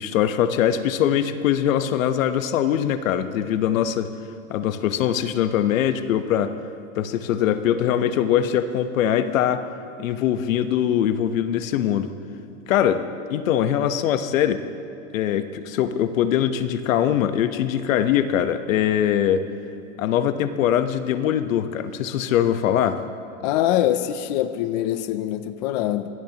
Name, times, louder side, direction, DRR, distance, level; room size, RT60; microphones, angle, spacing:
voice 1, 0.0-4.1 4.5-6.5 7.0-9.7 10.0-12.1 12.7-14.6 15.1-19.5 20.0-23.0, left 10 dB, 90° left, 10 dB, 1.1 m, -22 dB
voice 2, 23.4-26.1, left 12 dB, 35° left, 11 dB, 0.4 m, -23 dB
24.0 x 18.5 x 2.9 m, 2.7 s
supercardioid pair, 170°, 39 cm